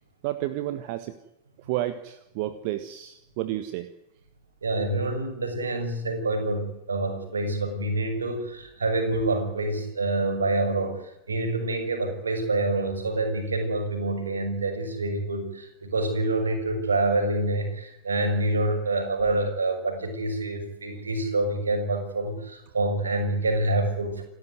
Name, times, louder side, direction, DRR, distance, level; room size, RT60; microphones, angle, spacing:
voice 1, 0.2-1.2 1.6-3.9, right 14 dB, 45° right, 12 dB, 1.4 m, -31 dB
voice 2, 4.6-11.0 11.3-24.2, right 2 dB, 75° right, 5 dB, 6.4 m, -27 dB
28.5 x 13.5 x 9.4 m, 0.88 s
figure-of-eight pair, 90°, 0 cm